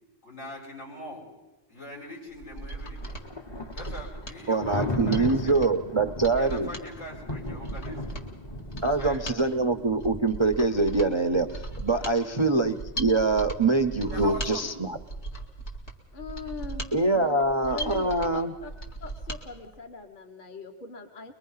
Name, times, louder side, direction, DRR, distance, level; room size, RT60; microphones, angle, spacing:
voice 1, 0.2-1.3 1.7-3.2 3.7-5.7 6.3-8.3 8.8-9.4 14.1-14.8, left 1 dB, 80° left, -4 dB, 6.8 m, -42 dB
Mechanisms, 2.3-19.4 19.8-19.9, right 2 dB, 60° left, 2.4 m, -38 dB
Thunder, 2.5-14.3, left 2 dB, 25° left, 0.8 m, -38 dB
voice 2, 4.5-6.7 8.8-15.0 16.9-18.5, right 3 dB, 30° right, 6 dB, 0.5 m, -24 dB
voice 3, 12.0-12.3 15.3-15.4 16.1-16.9 17.1-18.7 19.0-21.3, left 4 dB, 40° left, 5 dB, 1.4 m, -41 dB
23.0 x 22.5 x 5.6 m, 1.1 s
omnidirectional pair, 1.3 m